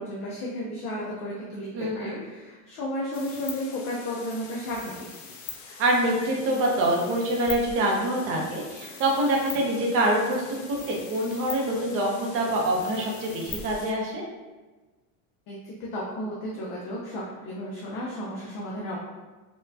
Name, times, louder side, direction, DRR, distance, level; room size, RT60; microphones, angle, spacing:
voice 1, 0.0-1.7 1.9-4.9 15.5-19.0, left 1 dB, 35° left, -4 dB, 0.4 m, -33 dB
voice 2, 1.7-2.2 5.8-14.2, right 1 dB, 35° right, -1 dB, 0.6 m, -25 dB
sound 1, 3.1-13.9, left 6 dB, 85° left, 0.7 m, -42 dB
4.3 x 2.2 x 2.6 m, 1.2 s
cardioid pair, 170°, 41 cm